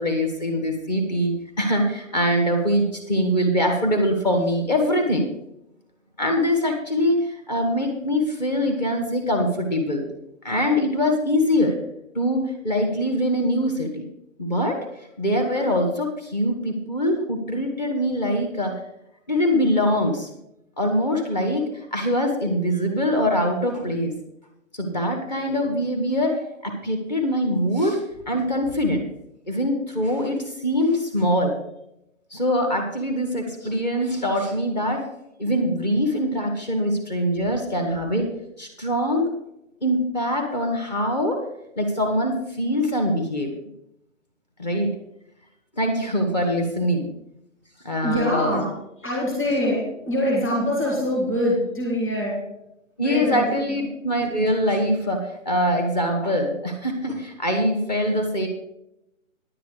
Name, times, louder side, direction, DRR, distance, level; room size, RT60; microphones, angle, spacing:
voice 1, 0.0-5.3 6.2-10.1 10.4-11.8 12.1-14.1 14.4-14.8 15.2-18.8 19.3-20.3 20.8-24.1 24.7-29.0 29.5-31.5 32.3-35.0 35.4-38.3 38.6-39.3 39.8-41.4 41.8-43.5 44.6-45.0 45.8-47.1 47.8-48.6 53.0-58.5, equal, 30° left, 1 dB, 1.7 m, -23 dB
voice 2, 48.0-48.7 49.0-52.4 53.0-53.9, equal, 5° left, -5 dB, 1.8 m, -24 dB
10.0 x 9.0 x 5.0 m, 0.82 s
hypercardioid pair, 170°, 40 cm